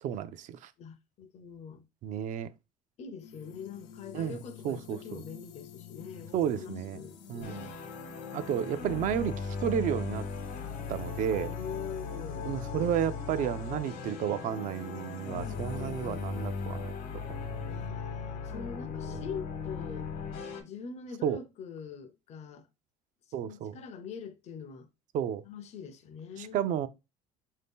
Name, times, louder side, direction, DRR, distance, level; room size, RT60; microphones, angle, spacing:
voice 1, 0.0-0.7 2.0-2.5 4.1-4.4 4.6-5.2 6.3-7.0 7.3-7.7 8.3-10.3 10.9-11.6 12.4-18.0 19.1-19.2 21.2-21.4 23.3-23.8 25.1-25.4 26.4-26.9, right 9 dB, 55° right, 0.4 m, -32 dB
voice 2, 0.8-1.8 3.0-7.8 11.5-12.5 15.7-16.3 17.7-20.1 20.6-22.7 23.4-24.9 25.5-26.6, left 6 dB, 45° left, 0.5 m, -43 dB
sound 1, 3.2-17.9, left 8 dB, 85° left, 0.6 m, -50 dB
sound 2, 7.4-20.6, left 5 dB, 65° left, 1.0 m, -38 dB
3.8 x 2.7 x 3.5 m
cardioid pair, 110°, 16 cm